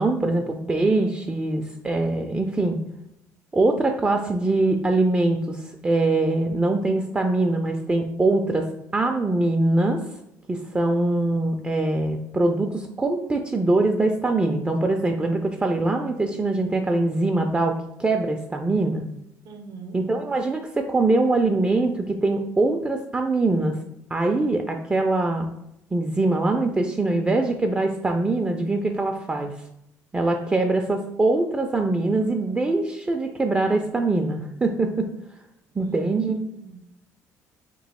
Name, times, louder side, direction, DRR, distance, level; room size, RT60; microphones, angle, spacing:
voice 1, 0.0-2.8 3.5-8.7 8.9-10.0 10.5-19.0 19.9-23.8 24.1-25.5 25.9-29.5 30.1-35.1 35.8-36.5, right 2 dB, 15° right, 4 dB, 0.4 m, -23 dB
voice 2, 19.4-20.0 35.7-36.9, right 5 dB, 65° right, 7 dB, 0.6 m, -43 dB
3.0 x 3.0 x 4.1 m, 0.82 s
cardioid pair, 95°, 7 cm